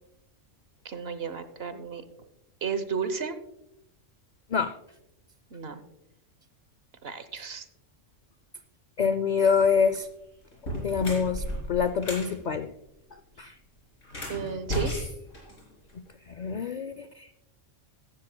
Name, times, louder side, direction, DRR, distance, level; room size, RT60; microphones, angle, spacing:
voice 1, 0.8-2.0 2.6-3.4 5.5-5.8 7.0-7.6 14.3-14.9, right 6 dB, 55° right, 11 dB, 1.1 m, -33 dB
voice 2, 9.0-10.1 10.7-12.7 13.1-13.5 15.9-17.3, left 6 dB, 70° left, 12 dB, 0.4 m, -26 dB
sound 1, 9.8-10.0 10.5-12.3 14.0-16.1, left 1 dB, 90° left, 4.0 m, -34 dB
15.5 x 13.0 x 2.2 m, 0.85 s
omnidirectional pair, 1.3 m